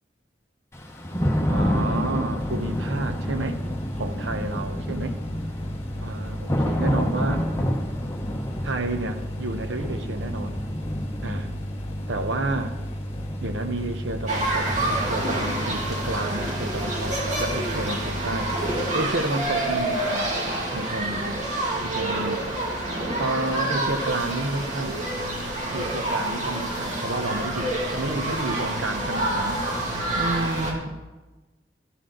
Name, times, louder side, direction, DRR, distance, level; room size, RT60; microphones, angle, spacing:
Thunder / Rain, 0.7-16.5, equal, 15° left, 1.0 m, -30 dB
voice 1, 1.4-3.6 3.9-5.2 6.0-7.5 8.6-10.6 11.2-11.5 12.1-12.8 13.4-20.3 20.7-21.4 21.8-22.4 23.2-25.0 25.7-29.6 30.1-31.0, right 2 dB, 80° right, 8 dB, 0.9 m, -30 dB
sound 1, 2.4-18.9, equal, 30° left, 0.6 m, -34 dB
sound 2, 14.3-30.7, right 1 dB, 40° right, 2.2 m, -27 dB
12.5 x 10.5 x 3.8 m, 1.1 s
head